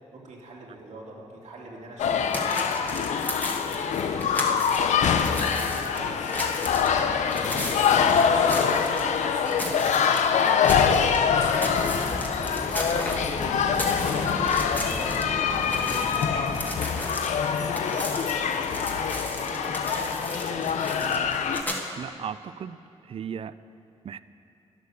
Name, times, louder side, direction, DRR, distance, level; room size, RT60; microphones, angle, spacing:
voice 1, 0.1-16.5 16.8-18.1 18.4-21.3, right 2 dB, 75° right, -3 dB, 2.3 m, -44 dB
sound 1, 2.0-21.6, left 7 dB, 80° left, 0.6 m, -24 dB
sound 2, 2.3-4.8 5.1-9.1 9.4-11.2 11.4-15.3 15.5-21.8, left 1 dB, 15° left, 1.5 m, -35 dB
Thunder, 11.5-16.6, left 1 dB, 35° left, 2.4 m, -36 dB
voice 2, 22.0-22.8 23.0-23.5 24.0-24.2, right 8 dB, 50° right, 15 dB, 0.4 m, -36 dB
11.5 x 9.2 x 6.8 m, 2.6 s
cardioid pair, 85°, 12 cm